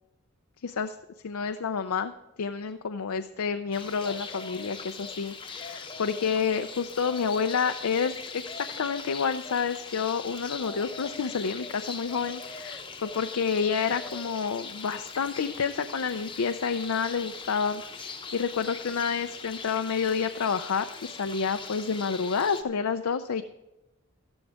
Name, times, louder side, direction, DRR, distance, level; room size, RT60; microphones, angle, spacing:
voice 1, 0.6-0.9 1.2-2.1 2.4-23.4, left 6 dB, 75° left, 8 dB, 0.5 m, -29 dB
sound 1, 3.7-22.6, left 4 dB, 20° left, 0.8 m, -41 dB
13.5 x 12.5 x 3.5 m, 0.98 s
head